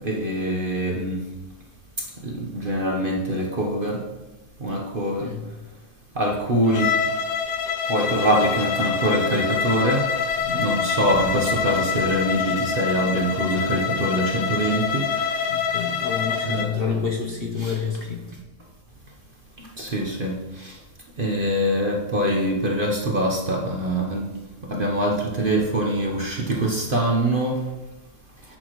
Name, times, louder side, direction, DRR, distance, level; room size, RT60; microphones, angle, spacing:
voice 1, 0.0-1.2 2.3-4.0 4.6-5.2 6.2-6.9 7.9-10.0 10.5-15.0 16.4-17.0 17.6-17.7 19.8-20.4 21.2-24.3 24.7-27.6, right 1 dB, 40° right, 0 dB, 1.0 m, -24 dB
voice 2, 5.2-5.5 10.4-10.8 15.5-18.3, left 5 dB, 45° left, 1 dB, 0.9 m, -29 dB
Bowed string instrument, 6.7-16.7, left 7 dB, 80° left, 1.3 m, -26 dB
10.5 x 8.0 x 3.1 m, 1.1 s
omnidirectional pair, 1.8 m